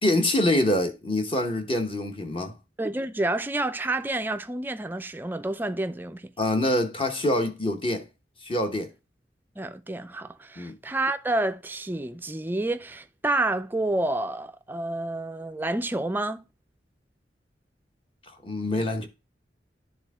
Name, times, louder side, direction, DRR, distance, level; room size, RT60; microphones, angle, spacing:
voice 1, 0.0-2.5 6.4-8.0 8.4-8.9 10.6-10.8 18.4-19.1, left 1 dB, 30° left, 1.0 m, -25 dB
voice 2, 2.8-6.3 9.6-16.4, right 2 dB, 10° right, 0.4 m, -29 dB
11.0 x 3.7 x 3.5 m
head